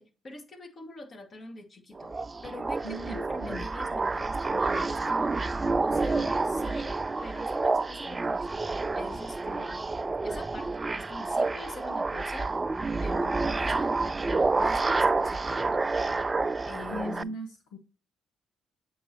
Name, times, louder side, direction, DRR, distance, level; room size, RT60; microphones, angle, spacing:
voice 1, 0.0-2.1 2.4-5.3 5.8-7.0 7.2-8.6 8.9-9.8 10.2-12.5 13.0-15.9 16.7-17.4, left 2 dB, 45° left, 2 dB, 1.9 m, -44 dB
sound 1, 2.0-17.2, right 3 dB, 30° right, 0.3 m, -29 dB
voice 2, 2.8-3.6 16.9-17.8, equal, 75° left, 3 dB, 0.8 m, -38 dB
7.9 x 5.4 x 2.9 m, 0.32 s
hypercardioid pair, 45°, 0 cm